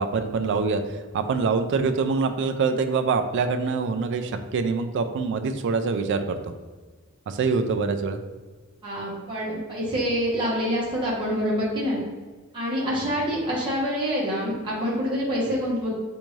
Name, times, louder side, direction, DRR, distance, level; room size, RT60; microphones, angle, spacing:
voice 1, 0.0-6.4 7.3-8.2 13.0-13.1, right 4 dB, 60° right, 8 dB, 0.3 m, -25 dB
voice 2, 8.8-12.0 12.5-15.9, equal, 25° right, -7 dB, 0.9 m, -26 dB
3.4 x 2.6 x 3.1 m, 1.4 s
head